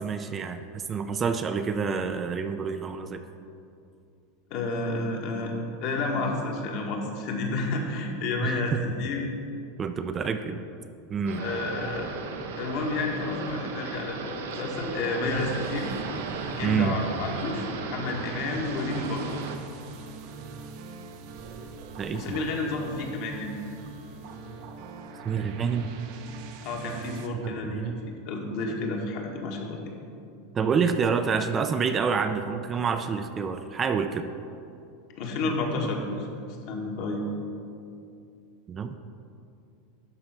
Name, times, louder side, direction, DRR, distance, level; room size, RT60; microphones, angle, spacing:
voice 1, 0.0-3.2 8.4-8.8 9.8-10.6 11.1-11.5 16.6-16.9 22.0-22.4 25.2-25.9 27.3-28.0 30.5-34.3 38.7-39.0, right 6 dB, 25° right, 8 dB, 0.4 m, -28 dB
voice 2, 4.5-5.5 5.8-9.3 11.4-12.1 12.6-15.9 16.6-19.3 22.1-23.5 26.6-29.9 35.2-36.3 36.7-37.3, left 3 dB, 55° left, 0 dB, 1.5 m, -30 dB
sound 1, 11.3-19.6, right 4 dB, 85° right, 0.9 m, -36 dB
sound 2, 15.3-27.3, right 5 dB, 60° right, 0.8 m, -42 dB
11.5 x 3.9 x 5.9 m, 2.5 s
supercardioid pair, 135°, 0 cm